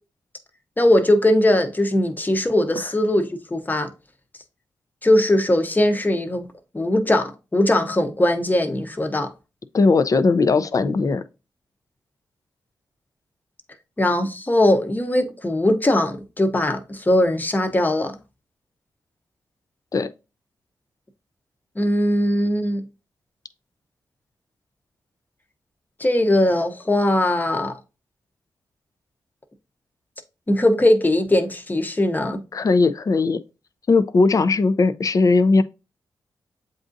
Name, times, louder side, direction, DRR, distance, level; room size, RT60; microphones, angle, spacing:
voice 1, 0.8-3.9 5.0-6.4 6.7-9.3 14.0-18.2 21.8-22.8 26.0-27.7 30.5-32.4, left 1 dB, 20° left, 0.8 m, -20 dB
voice 2, 9.7-11.2 19.9-20.1 32.5-33.4 33.9-35.6, left 3 dB, 45° left, 0.4 m, -18 dB
7.7 x 2.6 x 2.6 m
supercardioid pair, 45°, 8 cm